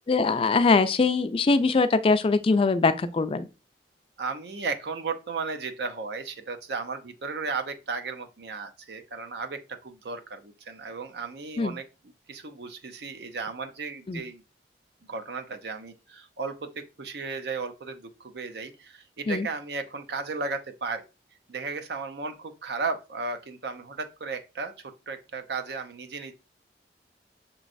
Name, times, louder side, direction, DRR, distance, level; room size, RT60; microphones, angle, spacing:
voice 1, 0.1-3.5 11.6-11.7 14.1-14.2 19.3-19.5, left 4 dB, 30° left, 0.3 m, -22 dB
voice 2, 4.2-11.9 12.3-14.4 15.1-21.0 21.5-26.3, right 4 dB, 65° right, 0.6 m, -35 dB
6.1 x 3.0 x 2.5 m
head